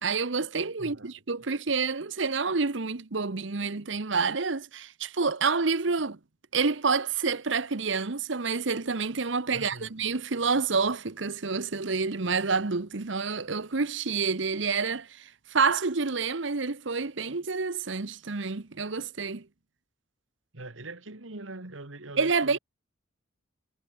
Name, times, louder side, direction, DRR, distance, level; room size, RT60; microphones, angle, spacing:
voice 1, 0.0-6.2 6.5-19.5 22.2-22.6, right 4 dB, 65° right, 1.1 m, -28 dB
voice 2, 0.8-1.1 1.4-1.5 9.5-10.0 20.5-22.6, right 2 dB, 80° right, 2.2 m, -43 dB
head